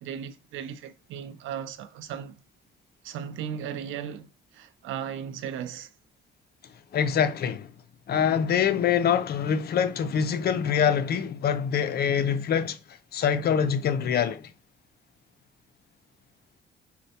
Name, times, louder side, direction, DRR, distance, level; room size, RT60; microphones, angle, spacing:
voice 1, 0.0-2.4 3.0-5.9, right 8 dB, 80° right, 0.4 m, -36 dB
voice 2, 6.9-7.7 8.1-12.8 13.1-14.5, left 8 dB, 55° left, 0.4 m, -24 dB
4.2 x 2.1 x 2.7 m
cardioid pair, 90°, 20 cm